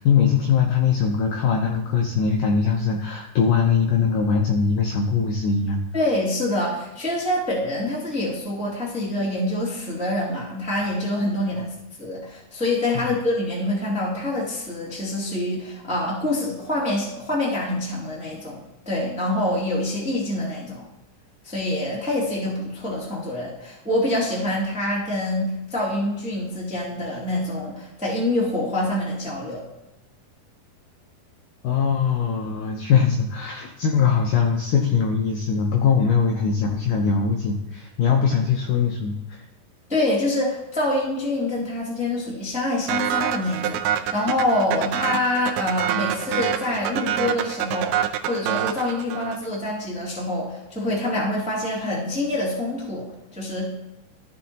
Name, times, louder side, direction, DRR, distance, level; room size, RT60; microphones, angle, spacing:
voice 1, 0.0-5.8 11.5-11.6 12.9-13.1 31.6-39.5, left 6 dB, 75° left, 2 dB, 2.0 m, -21 dB
voice 2, 5.9-18.6 18.8-20.8 21.4-29.6 39.9-48.0 48.3-53.0 53.3-53.7, left 1 dB, 5° right, -5 dB, 1.3 m, -26 dB
sound 1, 42.9-49.6, right 11 dB, 80° right, 2.4 m, -26 dB
14.0 x 6.3 x 2.9 m, 0.91 s
omnidirectional pair, 4.7 m